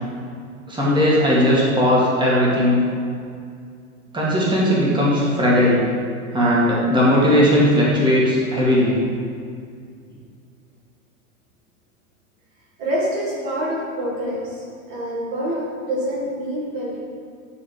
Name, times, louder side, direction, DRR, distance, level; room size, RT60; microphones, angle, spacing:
voice 1, 0.7-2.8 4.1-5.8 6.3-9.0, equal, 10° right, -6 dB, 2.2 m, -17 dB
voice 2, 12.8-17.0, equal, 50° right, -3 dB, 2.1 m, -26 dB
11.0 x 4.1 x 5.0 m, 2.3 s
hypercardioid pair, 110°, 42 cm